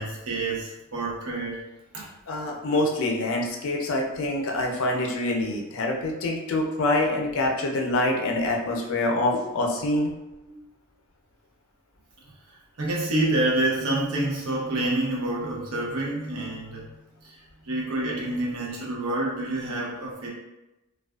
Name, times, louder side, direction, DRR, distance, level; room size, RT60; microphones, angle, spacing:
voice 1, 0.0-1.6 1.9-2.1 10.5-10.6 12.8-16.9 17.2-17.4 17.6-20.3, right 2 dB, 75° right, -4 dB, 0.7 m, -28 dB
voice 2, 2.3-10.1, left 2 dB, 60° left, 1 dB, 0.4 m, -25 dB
2.4 x 2.3 x 2.3 m, 0.99 s
head